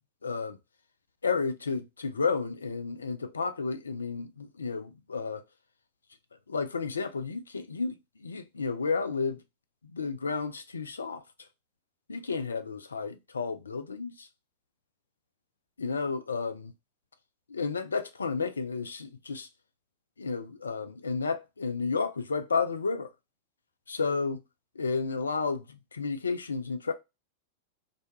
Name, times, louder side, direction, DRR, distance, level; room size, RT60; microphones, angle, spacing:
voice 1, 0.2-0.6 1.2-5.4 6.5-9.4 9.8-11.5 12.1-14.3 15.8-16.7 17.5-19.5 20.2-23.1 23.9-24.4 24.8-26.9, left 4 dB, 75° left, 0.3 m, -32 dB
2.6 x 2.2 x 2.8 m
figure-of-eight pair, 90°, 0 cm